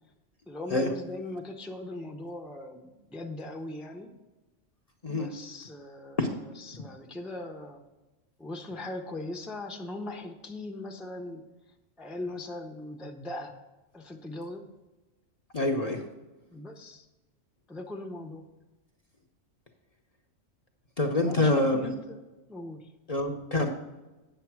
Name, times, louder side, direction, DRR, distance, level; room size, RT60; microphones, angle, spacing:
voice 1, 0.5-4.1 5.0-7.8 8.4-11.4 12.0-13.5 13.9-14.6 16.5-17.0 17.7-18.4 21.1-22.2 22.5-22.9, left 2 dB, ahead, 3 dB, 0.6 m, -39 dB
voice 2, 15.5-16.0 21.0-21.9 23.1-23.7, left 2 dB, 35° left, 2 dB, 0.7 m, -26 dB
9.2 x 6.8 x 4.7 m, 1.1 s
omnidirectional pair, 1.3 m